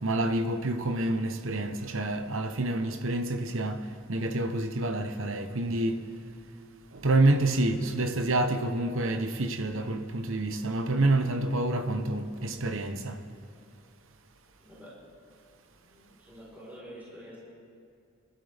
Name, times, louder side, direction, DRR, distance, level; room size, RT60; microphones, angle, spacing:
voice 1, 0.0-6.0 6.9-13.2, right 2 dB, 65° right, 1.0 m, -28 dB
voice 2, 14.6-15.2 15.7-17.4, equal, 10° right, 4.3 m, -48 dB
27.5 x 12.0 x 3.5 m
head